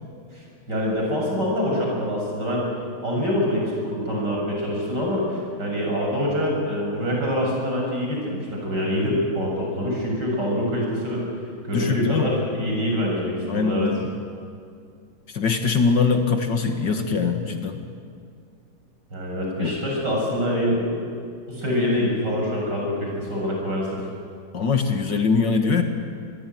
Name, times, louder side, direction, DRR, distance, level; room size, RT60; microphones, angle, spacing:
voice 1, 0.7-2.7 3.0-11.2 11.6-13.9 19.1-21.1 21.5-24.0, equal, 55° right, -2 dB, 7.9 m, -25 dB
voice 2, 11.7-12.3 13.5-14.1 15.3-17.8 19.6-19.7 24.5-25.8, left 5 dB, 60° left, 5 dB, 2.3 m, -22 dB
25.5 x 21.0 x 9.4 m, 2.3 s
omnidirectional pair, 2.3 m